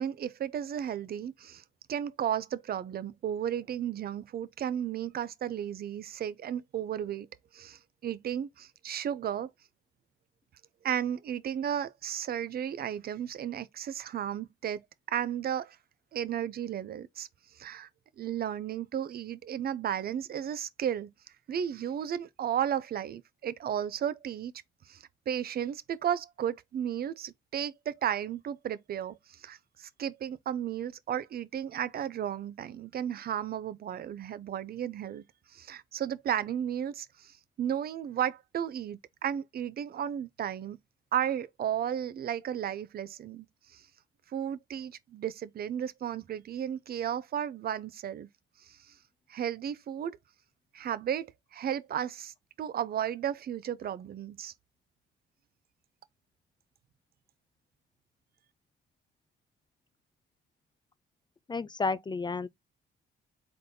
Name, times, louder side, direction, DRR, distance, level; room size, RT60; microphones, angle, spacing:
voice 1, 0.0-1.6 1.9-7.3 7.5-9.5 10.8-14.8 15.1-15.8 16.1-17.3 17.5-17.9 18.2-21.1 21.5-24.5 24.9-35.2 35.5-40.8 41.1-43.5 43.7-43.8 44.3-48.3 48.6-48.9 49.3-50.1 50.7-54.5, right 9 dB, 50° right, 0.5 m, -34 dB
voice 2, 61.5-62.5, left 4 dB, 20° left, 0.4 m, -31 dB
3.9 x 3.5 x 2.7 m
cardioid pair, 90°, 20 cm